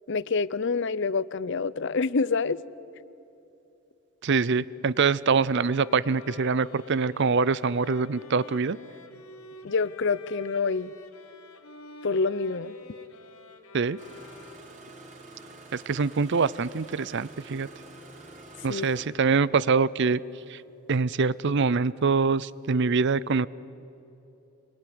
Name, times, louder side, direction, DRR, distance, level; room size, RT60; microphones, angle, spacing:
voice 1, 0.1-2.6 9.6-10.9 12.0-12.8 18.7-18.9, left 4 dB, 55° left, 19 dB, 0.6 m, -27 dB
voice 2, 4.2-8.8 13.7-14.0 15.7-17.7 18.6-20.2 20.5-20.6 20.9-23.5, right 4 dB, 55° right, 20 dB, 0.5 m, -24 dB
sound 1, 5.5-14.9, left 3 dB, 80° left, 2.0 m, -48 dB
Engine starting, 14.0-19.1, right 2 dB, 35° right, 4.4 m, -47 dB
26.0 x 23.0 x 9.6 m, 3.0 s
head